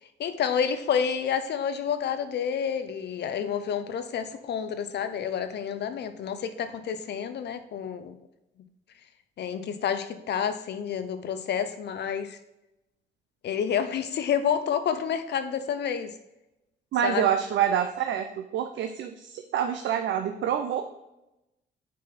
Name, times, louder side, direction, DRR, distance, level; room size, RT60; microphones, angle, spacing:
voice 1, 0.2-8.2 9.4-12.4 13.4-16.1 17.0-17.2, left 7 dB, 60° left, 10 dB, 0.5 m, -29 dB
voice 2, 16.9-20.8, right 9 dB, 70° right, 6 dB, 0.5 m, -27 dB
6.3 x 4.1 x 4.0 m, 0.92 s
cardioid pair, 90°, 20 cm